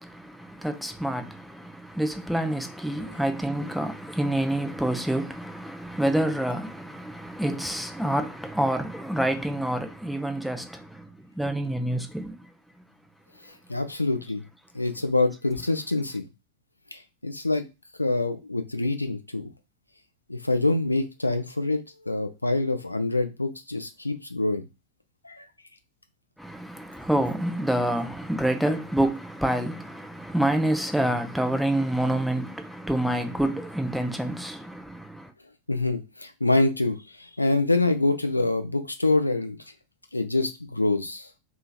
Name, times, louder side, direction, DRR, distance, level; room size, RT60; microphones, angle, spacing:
voice 1, 0.0-12.5 26.4-35.3, right 1 dB, ahead, 0.4 m, -27 dB
voice 2, 13.7-14.4 14.7-16.3 16.9-17.6 18.0-19.5 20.3-24.7 25.2-25.5 35.7-39.6 40.1-41.3, left 2 dB, 85° left, 0.4 m, -26 dB
2.8 x 2.7 x 2.4 m
figure-of-eight pair, 90°, 0 cm